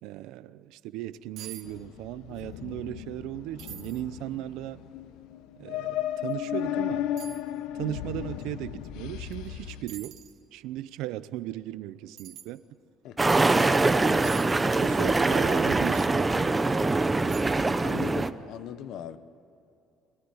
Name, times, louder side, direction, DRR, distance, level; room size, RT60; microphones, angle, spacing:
voice 1, 0.0-4.8 5.6-7.1 7.7-10.2 10.5-12.6 14.8-16.6, right 14 dB, 85° right, 16 dB, 0.8 m, -37 dB
sound 1, 1.0-1.1 1.4-1.7 1.9-2.5 2.8-2.9 3.6-4.0 4.7-4.8 6.2-6.4 7.2-7.4 9.3-9.5 9.9-10.4 12.2-12.5 14.2-14.5 15.9-16.1 16.7-16.8 17.3-17.7 18.0-18.1, right 11 dB, 65° right, 2.4 m, -45 dB
sound 2, 1.6-9.8, left 11 dB, 90° left, 1.1 m, -35 dB
sound 3, 13.2-18.3, right 3 dB, 15° right, 0.8 m, -23 dB
voice 2, 17.8-19.2, left 10 dB, 65° left, 12 dB, 1.2 m, -38 dB
26.0 x 18.0 x 9.8 m, 2.7 s
cardioid pair, 135°, 0 cm